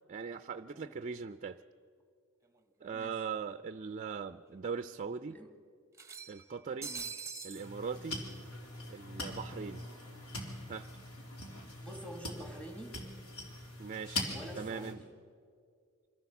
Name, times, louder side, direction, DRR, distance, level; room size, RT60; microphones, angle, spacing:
voice 1, 0.1-1.6 2.8-5.4 6.3-6.9 7.4-8.2 8.9-9.8 10.7-10.9 13.8-14.3 14.6-15.0, right 6 dB, 35° right, 10 dB, 0.4 m, -40 dB
sound 1, 2.5-2.6 2.9-3.0 4.1-4.2 4.5-4.6 5.9-7.7, right 5 dB, 15° right, 0.8 m, -43 dB
sound 2, 7.6-14.9, left 2 dB, 80° left, 3.3 m, -42 dB
voice 2, 11.8-13.1 14.3-15.1, equal, 5° left, 4 dB, 1.7 m, -48 dB
24.5 x 15.0 x 7.1 m, 2.3 s
head